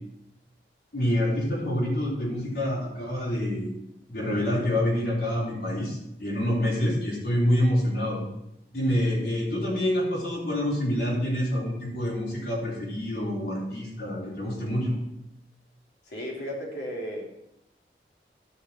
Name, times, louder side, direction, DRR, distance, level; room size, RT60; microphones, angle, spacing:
voice 1, 0.9-3.7 4.1-8.2 8.7-15.0, left 1 dB, 60° left, -8 dB, 4.0 m, -27 dB
voice 2, 16.0-17.2, equal, 80° left, -2 dB, 3.1 m, -34 dB
14.0 x 5.9 x 4.5 m, 0.81 s
head